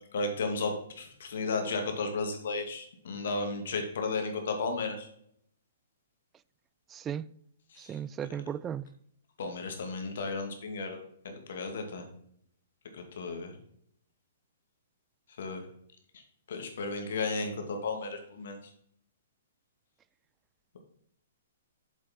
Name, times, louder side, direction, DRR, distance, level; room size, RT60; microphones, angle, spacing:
voice 1, 0.1-5.1 7.7-7.9 9.4-11.0 11.2-12.1 12.9-13.5 15.4-15.6 16.5-18.6, left 3 dB, 65° left, 2.0 m, -34 dB
voice 2, 6.9-7.3 7.8-8.9, right 8 dB, 20° right, 0.3 m, -36 dB
7.5 x 7.3 x 4.3 m
hypercardioid pair, 125°, 0 cm